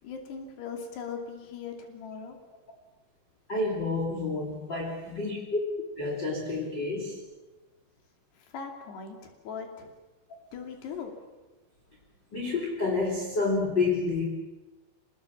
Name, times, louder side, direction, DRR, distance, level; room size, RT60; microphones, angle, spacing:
voice 1, 0.0-2.4 8.5-9.9 10.5-11.1, left 6 dB, 75° left, 4 dB, 4.8 m, -39 dB
voice 2, 3.5-5.6 6.0-7.2 12.3-14.2, left 3 dB, 30° left, -2 dB, 3.2 m, -29 dB
25.0 x 20.0 x 7.1 m, 1.1 s
omnidirectional pair, 4.8 m